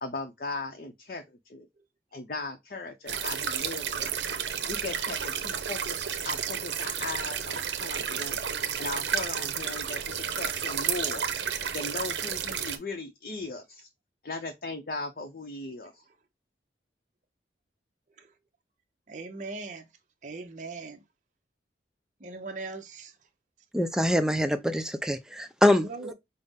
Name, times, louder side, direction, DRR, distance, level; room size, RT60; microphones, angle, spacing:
voice 1, 0.0-1.7 2.1-4.1 4.7-8.4 8.8-10.0 10.3-11.3 11.7-13.9 14.2-16.0, left 3 dB, 50° left, 0.6 m, -38 dB
sound 1, 3.1-12.8, right 8 dB, 80° right, 0.7 m, -31 dB
voice 2, 19.1-19.9 20.2-21.0 22.2-23.1 25.8-26.1, right 3 dB, 45° right, 0.7 m, -39 dB
voice 3, 23.7-26.1, left 1 dB, 5° right, 0.4 m, -25 dB
5.5 x 2.0 x 3.5 m
head